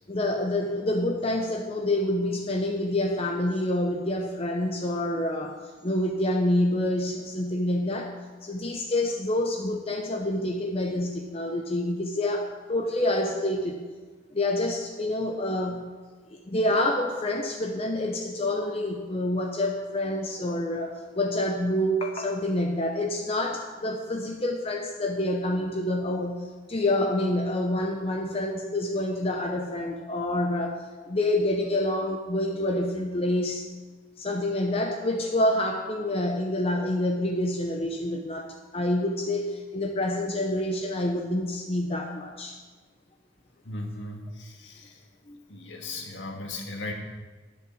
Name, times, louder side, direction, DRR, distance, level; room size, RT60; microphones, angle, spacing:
voice 1, 0.1-8.1 8.4-13.8 14.3-15.9 16.3-33.7 34.2-42.6 45.3-45.4, left 1 dB, 30° left, 3 dB, 0.7 m, -27 dB
voice 2, 43.6-45.0 45.5-46.9, left 2 dB, 75° left, 1 dB, 1.9 m, -37 dB
11.0 x 7.6 x 6.3 m, 1.4 s
head